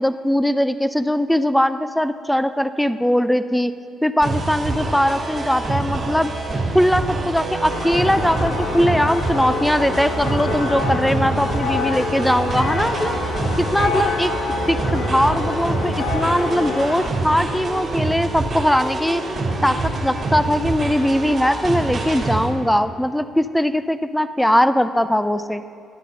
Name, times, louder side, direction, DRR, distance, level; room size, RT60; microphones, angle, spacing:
voice 1, 0.0-3.7 4.0-6.3 6.7-13.2 13.6-14.3 14.7-19.2 19.6-25.6, equal, 5° left, 12 dB, 0.4 m, -20 dB
sound 1, 4.2-22.5, right 2 dB, 40° right, 3.1 m, -26 dB
sound 2, 7.7-17.1, left 4 dB, 85° left, 1.1 m, -27 dB
12.5 x 8.3 x 5.5 m, 2.3 s
cardioid pair, 90°, 0 cm